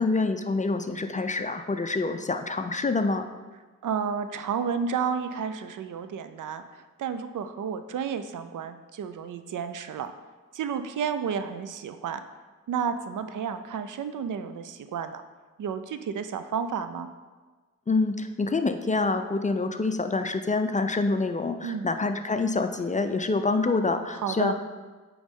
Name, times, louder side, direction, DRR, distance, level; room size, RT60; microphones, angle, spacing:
voice 1, 0.0-3.2 17.9-24.5, left 3 dB, 25° left, 7 dB, 0.4 m, -26 dB
voice 2, 3.8-10.1 10.5-12.2 12.7-15.2 15.6-17.1 21.6-21.9 24.1-24.5, right 7 dB, 70° right, 10 dB, 0.5 m, -31 dB
8.6 x 3.1 x 3.6 m, 1.3 s
cardioid pair, 50°, 32 cm